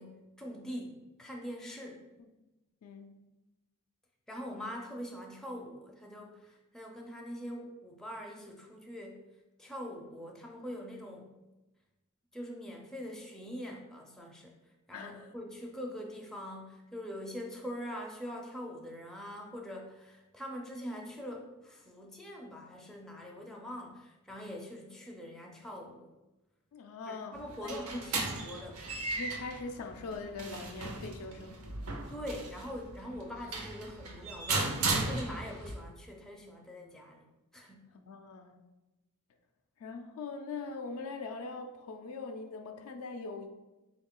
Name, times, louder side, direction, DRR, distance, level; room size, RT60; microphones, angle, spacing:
voice 1, 0.0-2.0 4.3-9.2 9.6-11.4 12.3-26.1 27.1-28.8 32.1-37.3 37.5-37.9, equal, 5° left, -1 dB, 0.4 m, -43 dB
voice 2, 2.8-3.2 4.6-4.7 14.9-15.2 26.7-28.0 29.2-31.9 38.1-38.6 39.8-43.5, left 4 dB, 70° left, 6 dB, 0.4 m, -42 dB
sound 1, 27.3-35.7, right 3 dB, 75° right, 0.6 m, -36 dB
3.8 x 2.3 x 3.7 m, 1.0 s
head